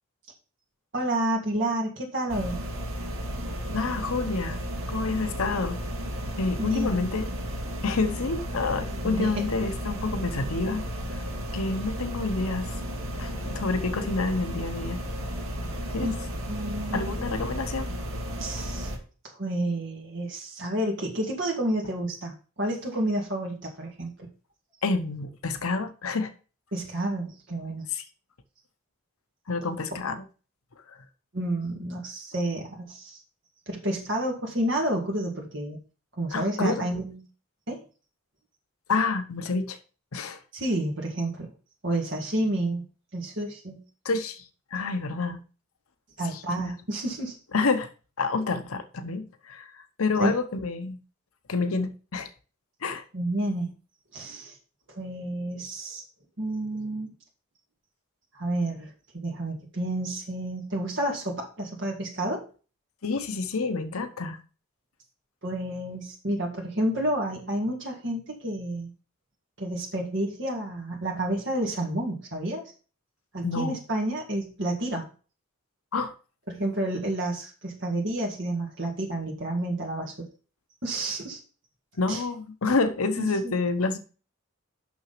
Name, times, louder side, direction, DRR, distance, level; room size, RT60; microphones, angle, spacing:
voice 1, 0.9-2.6 6.6-7.1 9.0-9.4 16.0-16.1 16.5-17.0 18.4-18.9 19.3-24.3 26.7-27.8 29.9-30.0 31.3-33.2 33.7-35.8 36.2-37.2 37.7-37.8 40.5-41.5 41.8-42.8 43.1-43.8 46.2-47.4 50.2-50.3 53.1-53.7 54.1-54.6 54.9-56.0 56.4-57.1 58.3-62.4 65.4-68.9 69.6-72.7 73.3-75.0 76.5-80.3 80.8-81.4 82.1-82.2 83.2-83.5, right 1 dB, 55° right, 2.1 m, -30 dB
sound 1, 2.3-19.0, equal, 80° right, 2.1 m, -33 dB
voice 2, 3.7-4.6 4.9-5.8 6.4-7.3 7.8-10.9 11.5-12.7 13.2-15.0 15.9-16.1 16.9-17.9 24.8-26.3 27.9-28.0 29.5-30.2 30.9-31.0 36.3-36.9 38.9-39.8 40.1-40.4 44.0-44.4 44.7-45.4 46.2-46.7 47.5-47.9 48.2-51.0 51.5-52.3 52.8-53.0 63.0-64.4 73.4-73.8 75.9-76.1 82.0-84.0, left 3 dB, 85° left, 0.9 m, -28 dB
6.2 x 6.0 x 5.7 m
head